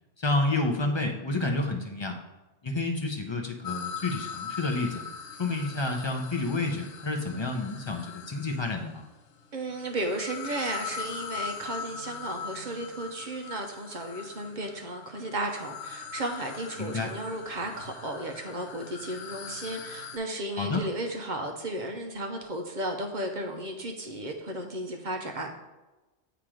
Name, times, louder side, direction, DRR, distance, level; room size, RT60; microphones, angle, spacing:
voice 1, 0.2-2.1 2.6-5.0 5.4-9.0 16.8-17.1 20.6-20.8, left 2 dB, 35° left, 3 dB, 0.5 m, -29 dB
sound 1, 3.6-8.9 9.7-20.2, left 6 dB, 75° left, 0.9 m, -41 dB
voice 2, 9.5-25.5, right 1 dB, 45° right, 3 dB, 0.7 m, -34 dB
7.5 x 3.0 x 4.9 m, 1.1 s
omnidirectional pair, 1.2 m